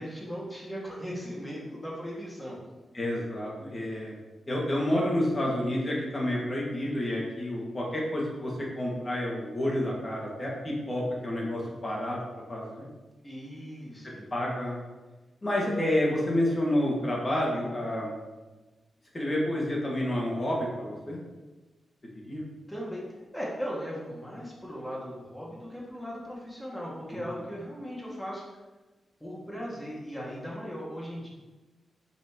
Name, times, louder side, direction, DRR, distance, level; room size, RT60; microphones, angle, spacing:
voice 1, 0.0-2.6 13.2-14.3 22.7-28.4 29.2-31.3, equal, 10° left, -5 dB, 2.1 m, -38 dB
voice 2, 2.9-4.1 4.5-12.9 14.3-14.8 15.4-18.1 19.1-21.2 22.1-22.4 27.1-27.2, left 1 dB, 30° left, -3 dB, 2.0 m, -29 dB
6.0 x 5.7 x 3.1 m, 1.2 s
cardioid pair, 90°, 0 cm